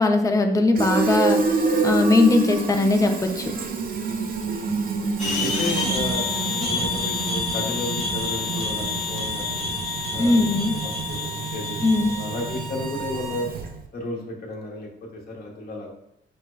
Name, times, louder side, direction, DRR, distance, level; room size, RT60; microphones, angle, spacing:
voice 1, 0.0-1.4 1.8-3.4 10.2-10.7 11.8-12.1, left 2 dB, 15° left, 4 dB, 0.5 m, -19 dB
Fill (with liquid), 0.7-13.9, right 4 dB, 45° right, 0.5 m, -28 dB
sound 1, 5.2-12.6, left 4 dB, 35° left, 0.9 m, -29 dB
voice 2, 5.4-9.6 10.1-13.5 13.9-15.9, left 2 dB, 50° left, -2 dB, 1.0 m, -33 dB
sound 2, 5.7-13.5, right 2 dB, 80° right, 0.7 m, -37 dB
6.0 x 2.1 x 2.3 m, 0.83 s
cardioid pair, 90°, 20 cm